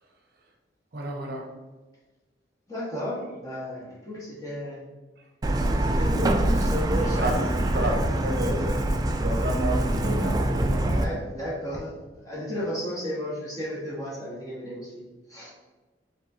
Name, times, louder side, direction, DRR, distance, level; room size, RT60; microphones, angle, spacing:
voice 1, 0.9-1.5 3.8-3.9 5.2-5.3 6.9-8.8 9.2-11.0 12.5-12.6, right 1 dB, 55° right, 1 dB, 0.7 m, -31 dB
voice 2, 2.7-4.8 5.8-7.3 10.9-11.9 12.2-15.5, equal, 20° left, -6 dB, 1.3 m, -34 dB
Truck, 5.4-11.0, right 1 dB, 20° right, 0.3 m, -24 dB
5.3 x 3.7 x 2.6 m, 1.2 s
head